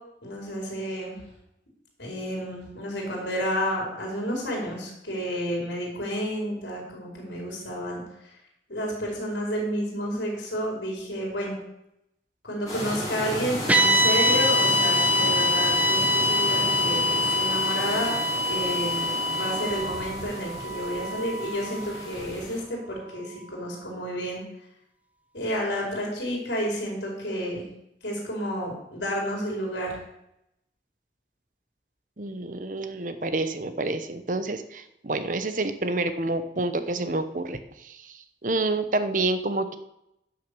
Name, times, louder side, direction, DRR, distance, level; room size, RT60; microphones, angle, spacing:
voice 1, 0.2-1.2 2.0-8.0 8.7-11.6 12.4-18.1 18.5-24.4 25.3-27.6 28.0-30.0, equal, 85° left, -1 dB, 4.6 m, -30 dB
sound 1, 12.7-22.6, left 1 dB, 20° left, 3.9 m, -34 dB
sound 2, 13.7-22.0, left 1 dB, 10° right, 0.8 m, -24 dB
voice 2, 32.2-39.8, right 2 dB, 45° right, 10 dB, 0.8 m, -28 dB
11.0 x 6.5 x 6.8 m, 0.82 s
head